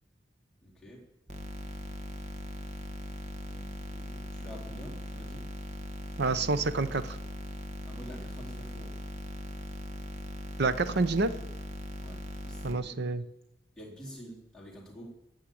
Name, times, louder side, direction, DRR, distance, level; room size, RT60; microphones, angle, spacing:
voice 1, 0.6-1.0 3.4-5.5 7.9-9.0 12.0-13.1 13.8-15.1, equal, 5° left, -6 dB, 3.4 m, -48 dB
sound 1, 1.3-12.7, left 1 dB, 40° right, 1.6 m, -40 dB
voice 2, 6.2-7.2 10.6-11.3 12.6-13.2, right 3 dB, 65° right, 12 dB, 0.8 m, -28 dB
15.0 x 6.5 x 8.5 m, 0.89 s
head